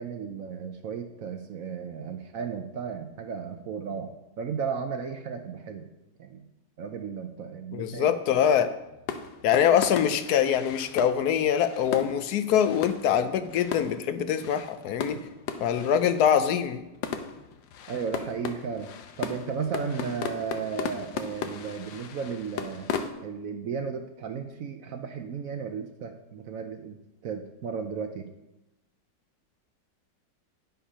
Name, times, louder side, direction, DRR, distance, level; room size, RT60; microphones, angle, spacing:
voice 1, 0.0-4.1 4.4-5.9 6.2-6.4 6.8-8.4 17.9-18.9 19.2-22.9 23.2-27.0 27.2-28.3, right 6 dB, 65° right, 6 dB, 0.9 m, -34 dB
voice 2, 7.7-8.7 9.4-15.2 15.6-16.8, left 9 dB, 65° left, 11 dB, 1.1 m, -24 dB
sound 1, 8.7-23.1, left 6 dB, 90° left, 1.5 m, -37 dB
10.0 x 5.7 x 5.5 m, 0.94 s
omnidirectional pair, 2.0 m